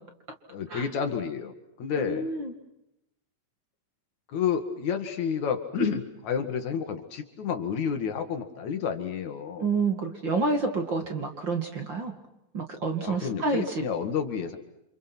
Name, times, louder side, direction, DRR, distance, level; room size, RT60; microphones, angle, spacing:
voice 1, 0.5-1.5 1.8-2.3 4.3-9.7 13.0-14.6, left 7 dB, 60° left, 7 dB, 3.0 m, -30 dB
voice 2, 2.0-2.5 9.6-12.1 12.5-13.8, right 3 dB, 35° right, 4 dB, 2.5 m, -28 dB
29.0 x 27.0 x 6.1 m, 0.84 s
omnidirectional pair, 3.9 m